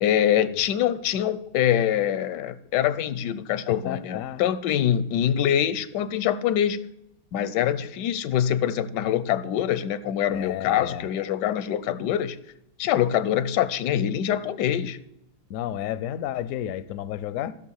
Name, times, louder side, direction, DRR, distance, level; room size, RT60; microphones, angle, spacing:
voice 1, 0.0-6.9 7.3-12.4 12.8-15.0, left 10 dB, 85° left, 15 dB, 1.2 m, -24 dB
voice 2, 3.7-4.5 10.2-11.1 15.5-17.5, left 11 dB, 70° left, 17 dB, 0.8 m, -32 dB
12.5 x 5.9 x 6.4 m, 0.79 s
omnidirectional pair, 1.8 m